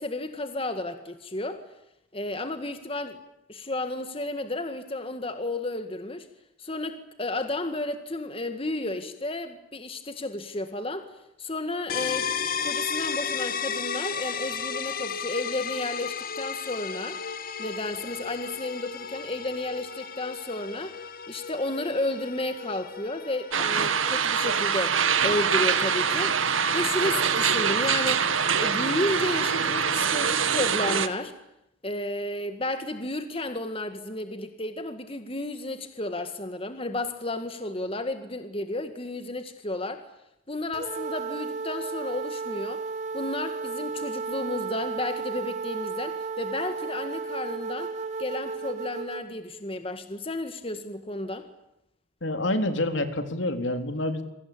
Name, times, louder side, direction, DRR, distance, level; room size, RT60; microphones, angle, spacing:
voice 1, 0.0-1.6 2.1-3.2 3.5-6.3 6.6-11.1 11.4-12.3 12.6-17.2 17.6-21.0 21.3-25.0 25.2-26.3 26.7-28.3 28.6-31.3 31.8-40.0 40.5-42.8 43.1-47.9 48.2-51.5, left 2 dB, 30° left, 8 dB, 2.0 m, -32 dB
sound 1, 11.9-27.5, left 6 dB, 45° left, 2.0 m, -35 dB
sound 2, 23.5-31.1, right 6 dB, 85° right, 2.1 m, -24 dB
sound 3, 40.7-49.2, right 4 dB, 35° right, 3.6 m, -33 dB
voice 2, 52.2-54.2, left 1 dB, 65° left, 8 dB, 3.6 m, -27 dB
28.5 x 23.5 x 8.7 m, 0.85 s
head